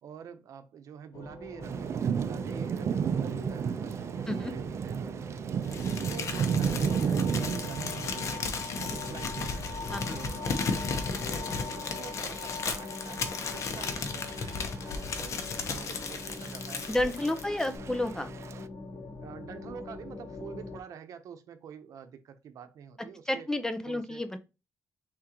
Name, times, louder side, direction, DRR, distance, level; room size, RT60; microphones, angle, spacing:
voice 1, 0.0-9.6 10.1-10.7 11.2-13.2 13.5-17.9 19.2-23.5 23.9-24.2, right 7 dB, 80° right, 0.7 m, -47 dB
sound 1, 1.1-20.8, left 3 dB, 90° left, 1.2 m, -43 dB
Thunder / Rain, 1.6-18.6, right 7 dB, 55° right, 0.4 m, -34 dB
Crumpling crinkling, 5.7-17.8, left 4 dB, 65° left, 0.9 m, -35 dB
voice 2, 16.9-18.3 23.3-24.4, left 1 dB, 10° left, 0.6 m, -30 dB
4.4 x 3.7 x 2.9 m
cardioid pair, 125°, 6 cm